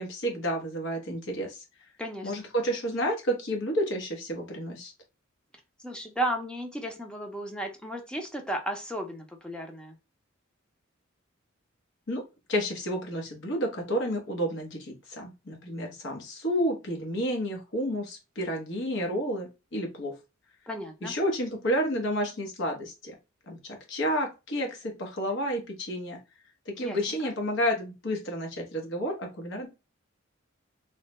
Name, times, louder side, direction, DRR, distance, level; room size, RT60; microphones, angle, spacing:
voice 1, 0.0-1.6 2.2-4.9 12.1-12.2 12.5-20.1 21.0-23.1 23.5-23.6 23.9-26.2 26.7-29.7, equal, 65° left, 2 dB, 1.0 m, -30 dB
voice 2, 2.0-2.3 5.8-9.9 20.7-21.1 26.8-27.0, right 1 dB, 5° left, 3 dB, 0.5 m, -34 dB
3.1 x 2.1 x 3.0 m, 0.27 s
head